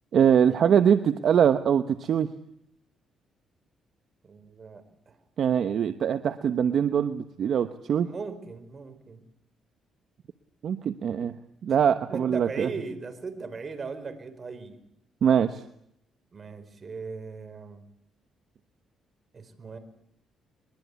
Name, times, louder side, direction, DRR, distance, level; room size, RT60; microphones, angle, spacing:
voice 1, 0.1-2.3 5.4-8.1 10.6-11.3 11.6-12.7 15.2-15.6, right 8 dB, 60° right, 10 dB, 1.1 m, -23 dB
voice 2, 4.2-5.2 8.0-9.2 11.7-11.8 12.1-14.8 16.3-17.8 19.3-19.8, right 4 dB, 40° right, 10 dB, 4.7 m, -38 dB
22.5 x 22.5 x 8.3 m, 0.74 s
cardioid pair, 90°, 0 cm